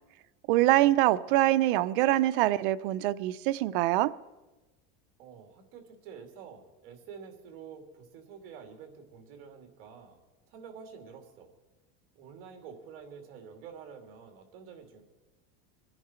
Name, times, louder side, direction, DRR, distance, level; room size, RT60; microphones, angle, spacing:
voice 1, 0.5-4.1, right 15 dB, 65° right, 14 dB, 0.6 m, -24 dB
voice 2, 5.2-10.2 10.5-11.5 12.1-15.0, right 6 dB, 45° right, 4 dB, 2.5 m, -48 dB
26.0 x 10.5 x 4.4 m, 1.1 s
supercardioid pair, 160°, 30 cm